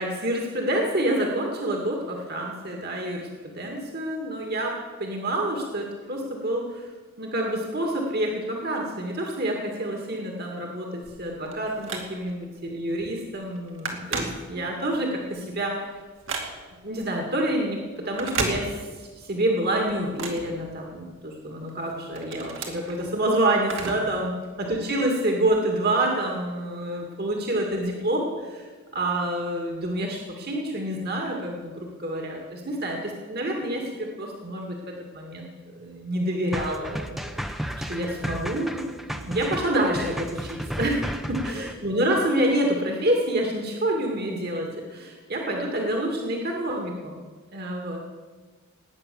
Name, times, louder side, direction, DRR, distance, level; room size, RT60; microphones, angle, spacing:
voice 1, 0.0-3.3 3.5-6.9 7.2-15.9 16.8-24.3 24.6-28.7 28.9-37.2 37.9-47.2 47.5-48.0, right 1 dB, 50° right, 1 dB, 2.2 m, -28 dB
Telephone, 11.1-12.5 13.0-13.2 13.4-14.9 15.3-16.9 18.0-19.2 19.5-21.2 21.7-24.2 24.5-24.6 25.5-25.6, right 3 dB, 65° right, 2.5 m, -34 dB
sound 1, 36.5-41.7, equal, ahead, 0.8 m, -33 dB
18.5 x 9.6 x 7.0 m, 1.4 s
head